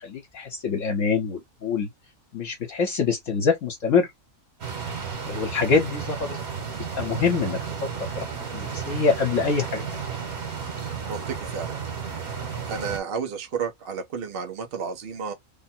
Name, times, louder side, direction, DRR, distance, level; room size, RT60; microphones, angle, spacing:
voice 1, 0.0-1.9 2.3-4.1 5.3-6.4 7.0-7.6 8.2-8.3 8.5-9.8, left 5 dB, 65° left, 1.3 m, -24 dB
sound 1, 4.6-13.0, right 6 dB, 90° right, 1.9 m, -33 dB
voice 2, 11.1-11.8 12.7-15.3, right 6 dB, 50° right, 1.0 m, -31 dB
3.6 x 2.1 x 4.2 m
omnidirectional pair, 1.5 m